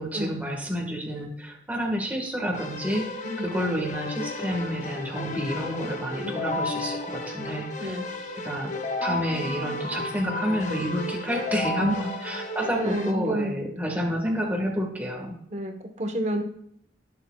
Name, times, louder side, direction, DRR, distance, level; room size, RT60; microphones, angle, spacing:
voice 1, 0.0-3.1 3.4-8.0 8.4-8.7 9.0-15.3, equal, 10° right, 0 dB, 1.6 m, -29 dB
Keyboard (musical), 2.5-13.1, left 2 dB, 45° left, 0.8 m, -33 dB
voice 2, 12.7-13.6 15.5-16.4, equal, 40° right, 4 dB, 1.2 m, -30 dB
19.0 x 6.7 x 2.4 m, 0.72 s
head